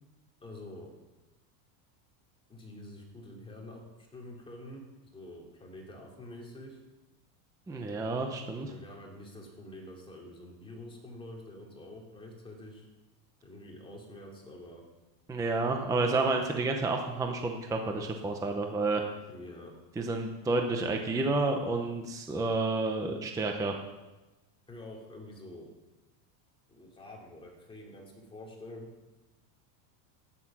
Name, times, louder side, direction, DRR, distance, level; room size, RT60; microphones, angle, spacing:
voice 1, 0.4-0.9 2.5-3.8 4.1-4.9 5.1-6.8 8.7-12.9 13.4-14.8 19.3-19.7 24.7-25.7 26.7-28.9, left 1 dB, 10° left, -2 dB, 2.7 m, -47 dB
voice 2, 7.7-8.7 15.3-19.0 20.0-23.8, right 3 dB, 5° right, 3 dB, 0.7 m, -30 dB
12.5 x 10.0 x 6.0 m, 1.1 s
cardioid pair, 160°, 50 cm